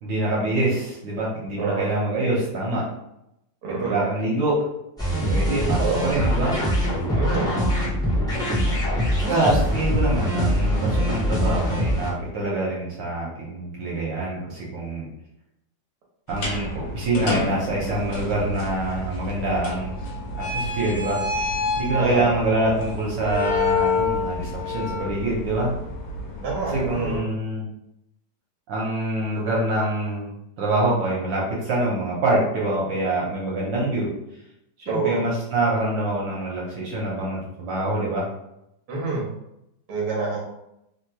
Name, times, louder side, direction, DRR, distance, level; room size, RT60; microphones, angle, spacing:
voice 1, 0.0-2.8 3.8-4.6 5.2-6.6 9.2-15.1 16.3-19.9 20.5-21.5 21.8-25.7 26.7-27.7 28.7-30.3 30.6-34.1 34.9-38.3, right 1 dB, 75° right, -5 dB, 1.3 m, -25 dB
voice 2, 1.6-1.9 3.6-4.0 5.8-6.1 7.2-7.6 22.0-22.3 26.4-27.2 34.9-35.2 38.9-39.2 39.9-40.4, right 3 dB, 60° right, -3 dB, 1.3 m, -26 dB
sound 1, 5.0-12.1, equal, 5° left, 0.3 m, -23 dB
sound 2, 16.3-27.2, left 3 dB, 70° left, 1.3 m, -28 dB
3.3 x 2.8 x 2.2 m, 0.84 s
omnidirectional pair, 2.0 m